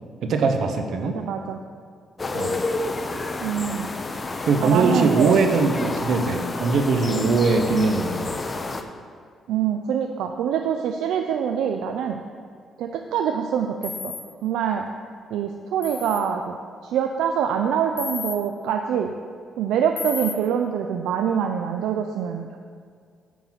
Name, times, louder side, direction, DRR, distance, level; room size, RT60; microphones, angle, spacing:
voice 1, 0.2-1.2 2.3-2.6 4.4-8.2, right 4 dB, 70° right, 6 dB, 0.8 m, -21 dB
voice 2, 1.0-1.6 3.4-3.9 4.6-5.4 9.5-12.2 12.8-14.1 14.4-14.9 15.3-16.6 16.8-19.1 19.6-22.6, right 8 dB, 85° right, 4 dB, 0.4 m, -25 dB
sound 1, 2.2-8.8, left 3 dB, 30° left, 0.6 m, -30 dB
sound 2, 13.8-14.2 15.8-16.2 18.0-18.4 20.0-20.3, left 6 dB, 45° left, 0.9 m, -32 dB
9.2 x 3.9 x 5.7 m, 2.1 s
cardioid pair, 90°, 0 cm